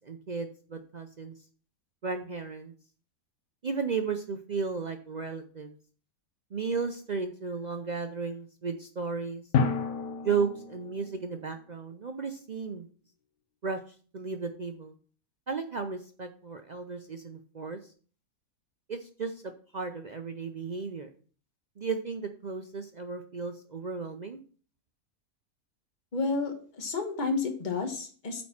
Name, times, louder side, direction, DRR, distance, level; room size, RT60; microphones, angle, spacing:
voice 1, 0.1-1.4 2.0-2.7 3.6-5.7 6.5-9.4 10.2-12.9 13.6-13.8 14.1-14.9 15.5-17.8 18.9-21.1 21.8-24.4, right 5 dB, 60° right, 6 dB, 0.4 m, -34 dB
Drum, 9.5-11.8, left 5 dB, 90° left, 1.3 m, -30 dB
voice 2, 26.1-28.4, left 4 dB, 35° left, 4 dB, 1.4 m, -31 dB
8.5 x 4.4 x 5.8 m, 0.42 s
omnidirectional pair, 1.5 m